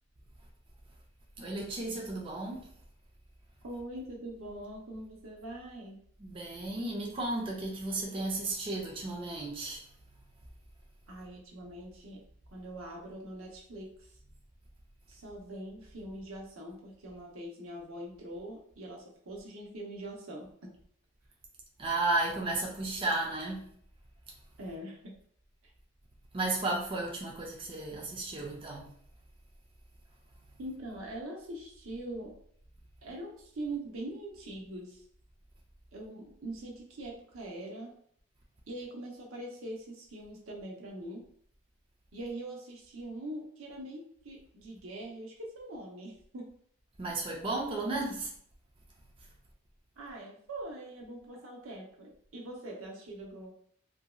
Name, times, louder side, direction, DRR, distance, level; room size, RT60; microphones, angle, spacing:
voice 1, 1.4-2.6 6.2-9.8 21.8-23.7 26.3-28.9 47.0-48.3, right 2 dB, 25° right, -2 dB, 0.4 m, -33 dB
voice 2, 3.6-6.0 11.1-12.2 12.5-14.1 15.1-20.7 24.6-25.2 30.6-32.4 33.0-35.0 35.9-38.0 38.7-41.3 42.1-46.6 50.0-53.5, right 1 dB, 90° right, -1 dB, 0.7 m, -43 dB
2.9 x 2.7 x 2.3 m, 0.63 s
head